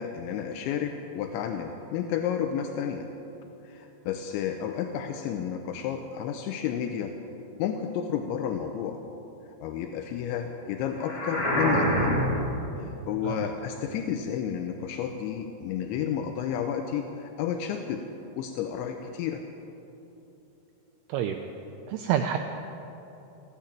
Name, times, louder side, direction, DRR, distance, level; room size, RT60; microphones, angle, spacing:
voice 1, 0.0-3.1 3.6-7.2 7.6-9.0 9.6-12.2 12.8-18.1 18.3-19.4, left 8 dB, 80° left, 5 dB, 3.0 m, -31 dB
sound 1, 11.0-12.6, equal, 25° left, 3.1 m, -25 dB
voice 2, 21.9-22.4, right 10 dB, 90° right, 6 dB, 2.3 m, -27 dB
15.5 x 10.5 x 8.7 m, 3.0 s
omnidirectional pair, 5.3 m